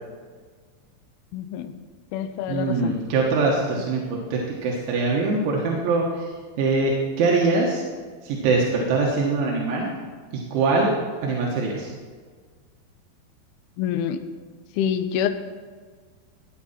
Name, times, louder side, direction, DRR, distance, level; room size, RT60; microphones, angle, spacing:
voice 1, 1.3-1.7 2.1-3.0 13.8-14.2 14.8-15.3, left 9 dB, 90° left, 8 dB, 2.2 m, -26 dB
voice 2, 2.5-6.3 6.6-7.8 8.2-9.9 10.3-10.9 11.2-11.9, right 3 dB, 85° right, -2 dB, 3.8 m, -23 dB
16.5 x 9.9 x 4.3 m, 1.5 s
omnidirectional pair, 5.3 m